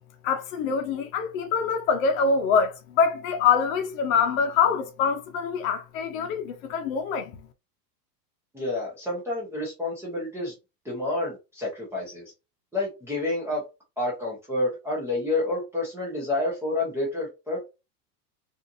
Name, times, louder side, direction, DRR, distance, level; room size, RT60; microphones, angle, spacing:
voice 1, 0.2-7.5, left 6 dB, 55° left, 0.7 m, -25 dB
voice 2, 8.5-10.5 10.8-12.3 12.7-13.6 14.0-17.7, left 2 dB, 5° right, 0.5 m, -29 dB
2.6 x 2.4 x 2.6 m
supercardioid pair, 140°, 50 cm